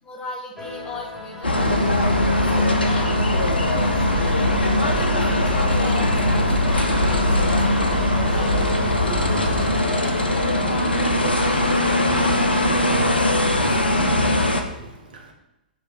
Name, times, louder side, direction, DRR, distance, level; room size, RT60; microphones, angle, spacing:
voice 1, 0.0-1.6 2.4-14.0, left 2 dB, 20° left, 0 dB, 1.5 m, -38 dB
sound 1, 0.5-14.3, left 2 dB, 5° right, 2.1 m, -39 dB
sound 2, 1.4-14.6, left 1 dB, 85° left, 0.9 m, -20 dB
sound 3, 1.5-9.8, right 2 dB, 40° right, 1.5 m, -29 dB
voice 2, 4.7-5.2 8.8-9.2 11.4-12.5 12.9-13.1 13.4-15.3, right 3 dB, 60° right, 3 dB, 1.5 m, -39 dB
8.7 x 3.4 x 5.8 m, 0.98 s
figure-of-eight pair, 115°, 5 cm